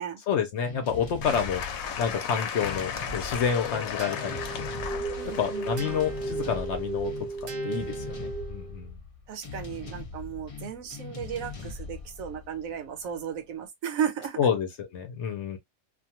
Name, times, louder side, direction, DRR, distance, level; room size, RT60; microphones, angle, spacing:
voice 1, 0.3-1.6 2.0-4.7 5.4-7.1 7.4-9.0 14.4-14.7 14.9-15.6, left 7 dB, 60° left, 0.8 m, -29 dB
sound 1, 0.6-13.4, left 4 dB, 35° left, 0.5 m, -41 dB
Applause / Crowd, 1.2-7.5, left 8 dB, 85° left, 1.0 m, -36 dB
sound 2, 4.0-8.8, right 4 dB, 45° right, 0.6 m, -35 dB
voice 2, 5.1-6.1 9.3-14.4, right 8 dB, 75° right, 1.1 m, -35 dB
2.5 x 2.3 x 2.8 m
omnidirectional pair, 1.5 m